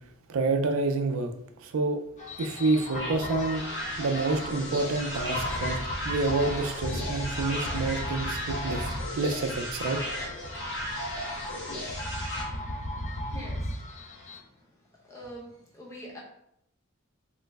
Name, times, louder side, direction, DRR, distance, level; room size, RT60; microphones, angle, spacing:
voice 1, 0.3-1.3 1.6-2.0 2.4-3.6 4.0-5.8 6.0-10.0, right 3 dB, 80° right, 6 dB, 0.4 m, -28 dB
sound 1, 2.2-14.4, left 1 dB, 35° left, 0.4 m, -36 dB
sound 2, 2.9-12.4, equal, 60° left, 1.0 m, -35 dB
voice 2, 12.7-13.9 14.3-14.7 15.0-16.2, equal, 15° left, -4 dB, 0.8 m, -45 dB
3.1 x 2.0 x 3.4 m, 0.74 s
head